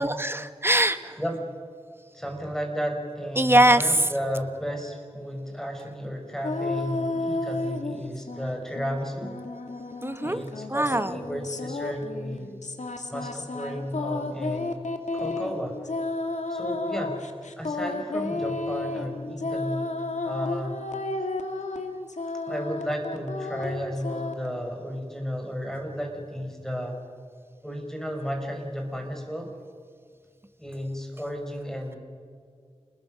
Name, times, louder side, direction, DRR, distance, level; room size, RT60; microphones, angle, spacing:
voice 1, 0.0-1.2 3.3-4.1 10.0-10.4 10.7-11.2, right 1 dB, 20° right, 11 dB, 1.3 m, -22 dB
voice 2, 2.1-9.3 10.2-12.5 13.1-14.7 15.1-15.9 16.5-17.2 17.6-19.9 20.2-20.9 22.5-27.0 27.6-29.5 30.6-32.0, equal, 5° left, 3 dB, 5.1 m, -33 dB
sound 1, 6.4-8.5 8.8-24.5, left 2 dB, 85° left, 1.8 m, -32 dB
29.0 x 20.5 x 6.4 m, 2.1 s
wide cardioid pair, 55°, 12 cm